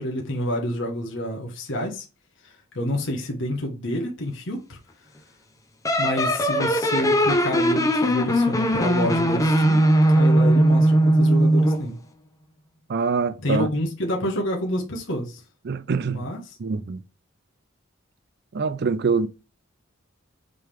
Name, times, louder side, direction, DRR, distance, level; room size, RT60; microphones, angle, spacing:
voice 1, 0.0-2.0 2.4-4.8 6.0-9.8 10.1-11.9 13.4-15.4 16.1-16.6, equal, 60° left, 1.4 m, -28 dB
sound 1, 5.9-11.9, right 1 dB, 15° left, 0.8 m, -19 dB
voice 2, 12.9-13.7 15.7-16.3 16.6-17.0 18.5-19.3, right 4 dB, 50° right, 0.4 m, -24 dB
7.6 x 3.7 x 3.4 m
head